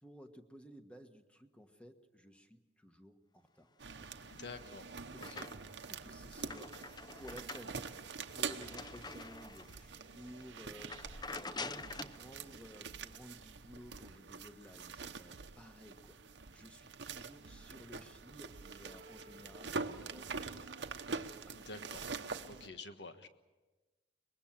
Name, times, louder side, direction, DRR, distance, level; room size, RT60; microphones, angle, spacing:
voice 1, 0.0-3.7 4.0-4.3 5.1-5.4 5.8-7.8 8.3-20.8 21.5-21.6, equal, 5° left, 6 dB, 1.3 m, -55 dB
sound 1, 3.8-22.7, right 4 dB, 70° right, 1.0 m, -45 dB
voice 2, 4.3-5.5 21.5-22.1 22.5-23.3, left 3 dB, 65° left, 8 dB, 1.5 m, -49 dB
sound 2, 4.3-5.8 6.2-9.8 10.3-10.4 10.8-12.2, left 3 dB, 25° left, 0.6 m, -47 dB
sound 3, 5.7-20.9, right 4 dB, 90° right, 0.7 m, -61 dB
23.5 x 20.5 x 7.4 m, 1.2 s
head